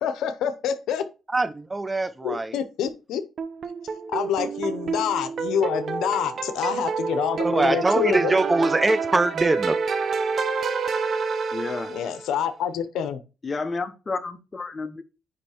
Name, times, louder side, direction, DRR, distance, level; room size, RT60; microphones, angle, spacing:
voice 1, 0.0-1.0 2.2-3.2 4.1-8.3 11.9-13.2, left 8 dB, 80° left, 0.9 m, -27 dB
voice 2, 1.3-2.6 7.4-9.8, right 2 dB, 20° right, 0.6 m, -23 dB
sound 1, 3.4-12.3, right 5 dB, 55° right, 0.9 m, -28 dB
voice 3, 11.5-11.9 13.4-15.0, left 4 dB, 30° left, 1.1 m, -31 dB
9.7 x 3.2 x 4.4 m
cardioid pair, 90°, 0 cm